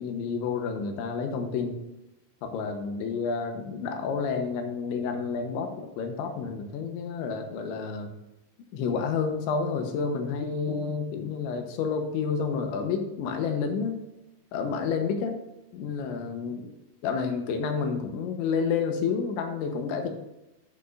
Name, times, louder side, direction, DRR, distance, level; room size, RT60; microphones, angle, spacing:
voice 1, 0.0-1.8 2.4-8.1 8.7-14.0 14.5-15.4 15.7-16.7 17.0-20.1, left 5 dB, 85° left, 4 dB, 3.4 m, -30 dB
12.5 x 7.4 x 2.6 m, 0.93 s
omnidirectional pair, 5.3 m